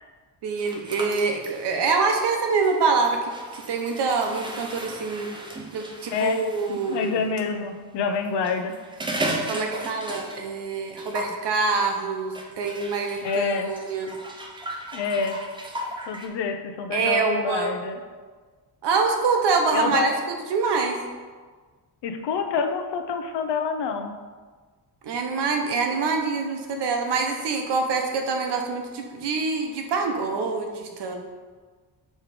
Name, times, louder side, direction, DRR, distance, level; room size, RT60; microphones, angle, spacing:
voice 1, 0.4-5.3 5.7-7.2 9.5-14.1 16.9-17.7 18.8-21.0 25.0-31.2, right 4 dB, 80° right, 3 dB, 0.9 m, -25 dB
sound 1, 0.6-7.2 8.2-10.6 10.9-11.4 12.3-16.3, right 1 dB, 10° right, 0.5 m, -36 dB
voice 2, 6.1-8.8 13.2-13.7 14.9-15.4 16.1-18.0 19.7-20.2 22.0-24.2, left 5 dB, 85° left, 7 dB, 0.7 m, -27 dB
6.4 x 3.2 x 4.9 m, 1.4 s
wide cardioid pair, 170°, 41 cm